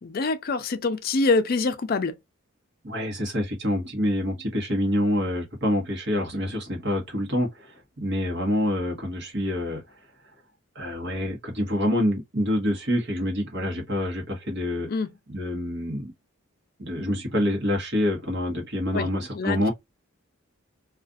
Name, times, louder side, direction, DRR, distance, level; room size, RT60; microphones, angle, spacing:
voice 1, 0.0-2.1 14.9-15.1 18.9-19.1 19.3-19.6, left 3 dB, 45° left, 0.4 m, -25 dB
voice 2, 2.8-9.8 10.7-14.9 15.3-16.1 16.8-19.7, equal, 55° right, 1.1 m, -26 dB
2.4 x 2.4 x 2.4 m
head